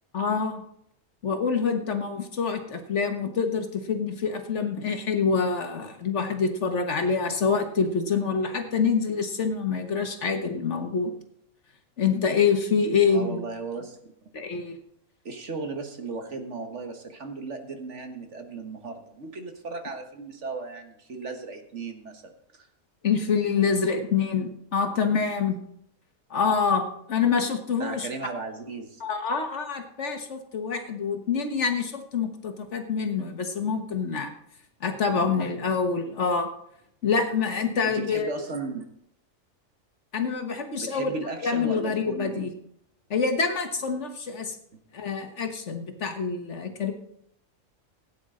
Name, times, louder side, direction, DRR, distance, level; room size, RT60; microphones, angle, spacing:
voice 1, 0.1-0.6 1.2-11.1 12.0-13.4 14.3-14.7 23.0-25.6 26.3-28.1 29.0-34.3 34.8-36.5 37.0-38.3 40.1-41.1 41.4-42.5 43.1-44.6 44.9-46.9, left 5 dB, 55° left, 6 dB, 1.6 m, -26 dB
voice 2, 13.1-14.0 15.3-22.7 27.8-29.0 35.1-35.3 37.8-38.9 40.8-42.5, right 3 dB, 55° right, 5 dB, 1.7 m, -36 dB
17.0 x 9.4 x 3.8 m, 0.72 s
omnidirectional pair, 1.5 m